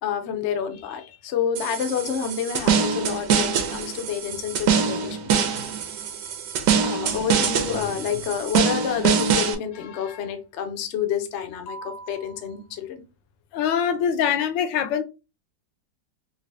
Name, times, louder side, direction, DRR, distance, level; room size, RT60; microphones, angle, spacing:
voice 1, 0.0-5.7 6.8-13.0, left 7 dB, 65° left, 0.6 m, -29 dB
sound 1, 1.6-9.6, right 7 dB, 75° right, 1.3 m, -24 dB
voice 2, 13.5-15.0, left 8 dB, 85° left, 1.3 m, -23 dB
3.7 x 2.6 x 3.2 m
omnidirectional pair, 2.0 m